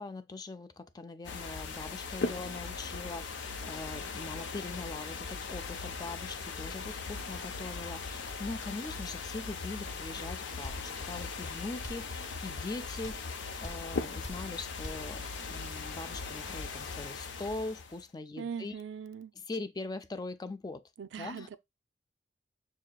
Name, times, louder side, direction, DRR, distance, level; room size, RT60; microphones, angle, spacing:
voice 1, 0.0-18.8 19.3-20.9 21.2-21.6, left 3 dB, 20° left, 0.4 m, -42 dB
sound 1, 1.2-18.0, left 4 dB, 85° left, 0.6 m, -39 dB
sound 2, 10.6-10.9 11.8-12.1 13.0-13.3 13.6-13.9 14.2-14.5 14.8-15.1, left 1 dB, 40° left, 0.8 m, -41 dB
voice 2, 18.4-19.3 21.0-21.6, right 7 dB, 80° right, 0.4 m, -40 dB
6.5 x 2.7 x 2.2 m
head